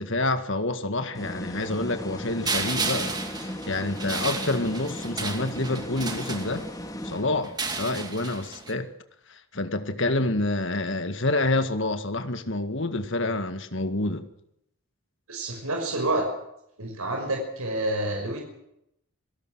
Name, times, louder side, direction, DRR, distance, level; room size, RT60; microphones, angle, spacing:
voice 1, 0.0-6.6 7.0-8.9 9.3-14.3, left 2 dB, 55° left, 1.9 m, -28 dB
sound 1, 1.1-7.8, left 1 dB, 15° left, 2.3 m, -37 dB
sound 2, 2.4-6.9 7.4-8.7, right 4 dB, 20° right, 2.3 m, -32 dB
voice 2, 15.3-16.3 16.8-18.4, right 1 dB, 80° right, 5.7 m, -28 dB
26.0 x 17.5 x 6.3 m
head